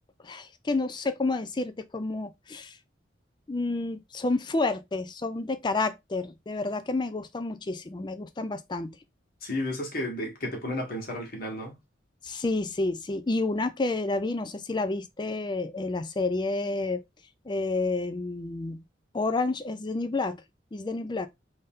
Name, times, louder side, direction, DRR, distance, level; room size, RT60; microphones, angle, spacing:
voice 1, 0.2-2.8 3.5-9.0 12.2-17.0 17.5-18.8 19.1-20.4 20.7-21.3, left 3 dB, 25° left, 0.4 m, -30 dB
voice 2, 9.4-11.8, left 1 dB, 50° left, 1.4 m, -32 dB
3.5 x 2.8 x 3.6 m
head